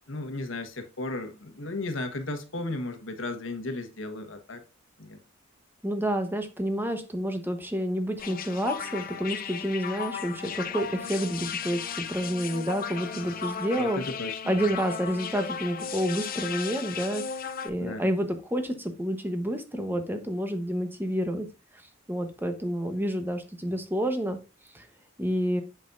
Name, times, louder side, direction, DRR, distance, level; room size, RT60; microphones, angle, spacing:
voice 1, 0.1-4.6 5.0-5.2 13.7-14.6 17.8-18.1, left 2 dB, 85° left, 1.4 m, -35 dB
voice 2, 5.8-14.0 14.5-17.2 17.6-21.5 22.1-24.4 24.7-24.9 25.2-25.6, equal, 10° right, 1.1 m, -29 dB
sound 1, 8.2-17.7, left 7 dB, 45° left, 0.7 m, -35 dB
8.0 x 6.3 x 2.6 m
head